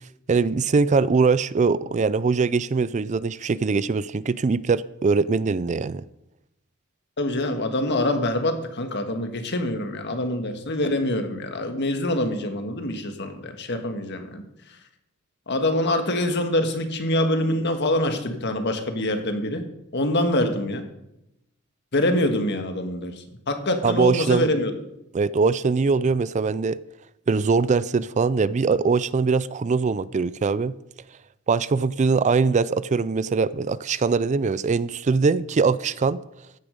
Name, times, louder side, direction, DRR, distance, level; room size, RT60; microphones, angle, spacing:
voice 1, 0.3-6.0 23.8-24.5 25.1-26.8 27.3-30.8 31.5-36.2, right 4 dB, 35° right, 0.4 m, -22 dB
voice 2, 7.2-14.4 15.5-19.6 19.9-20.9 21.9-24.7, left 1 dB, 55° left, 1.6 m, -25 dB
15.0 x 9.8 x 5.2 m
head